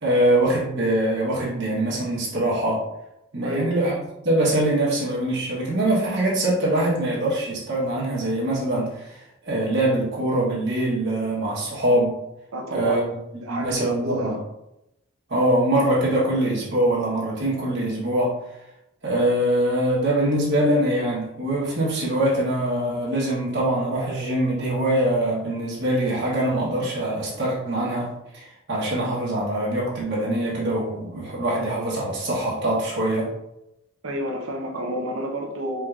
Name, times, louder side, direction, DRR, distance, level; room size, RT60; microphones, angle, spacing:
voice 1, 0.0-2.8 3.3-4.0 4.2-12.1 12.7-13.0 13.5-14.4 15.3-18.4 19.0-33.3, right 1 dB, 55° right, -6 dB, 1.2 m, -23 dB
voice 2, 3.4-3.7 12.5-13.0 13.4-14.4 34.0-35.9, equal, 80° right, 2 dB, 0.8 m, -30 dB
4.7 x 3.8 x 2.4 m, 0.85 s
head